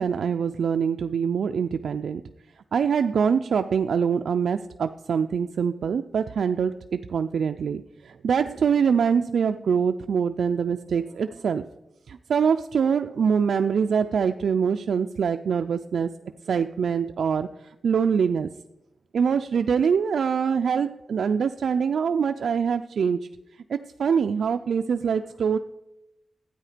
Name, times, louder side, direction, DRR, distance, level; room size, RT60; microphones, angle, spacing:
voice 1, 0.0-2.2 2.7-11.7 12.1-16.1 16.4-18.5 19.1-23.2 23.7-25.6, right 6 dB, 90° right, 8 dB, 0.4 m, -24 dB
13.0 x 9.2 x 5.0 m, 0.93 s
wide cardioid pair, 125°, 0 cm